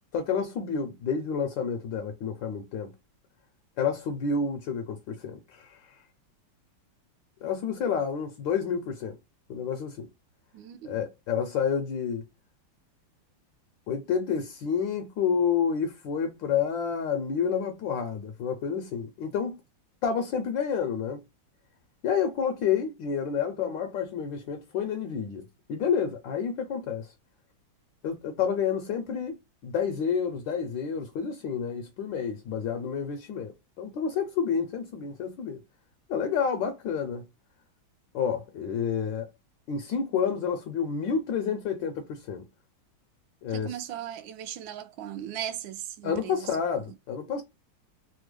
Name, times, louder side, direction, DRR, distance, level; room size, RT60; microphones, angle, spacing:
voice 1, 0.1-2.9 3.8-6.0 7.4-9.2 9.5-10.1 10.8-12.2 13.9-19.6 20.0-21.2 22.0-27.1 28.0-35.6 36.1-37.3 38.1-39.3 39.7-42.4 43.4-43.7 46.0-47.4, left 6 dB, 75° left, 1.2 m, -29 dB
voice 2, 10.5-11.0 43.5-46.6, right 11 dB, 75° right, 1.2 m, -38 dB
3.5 x 2.2 x 3.1 m
omnidirectional pair, 2.3 m